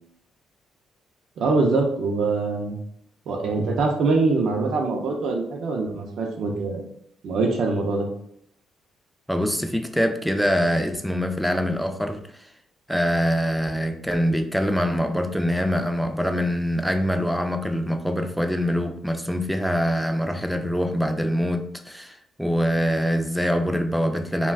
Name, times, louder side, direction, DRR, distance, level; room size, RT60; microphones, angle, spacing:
voice 1, 1.4-2.8 3.3-6.8 7.2-8.1, right 3 dB, 70° right, 0 dB, 0.5 m, -23 dB
voice 2, 9.3-12.5 12.9-24.5, equal, ahead, 6 dB, 0.3 m, -24 dB
2.3 x 2.2 x 3.3 m, 0.70 s
cardioid pair, 90°, 0 cm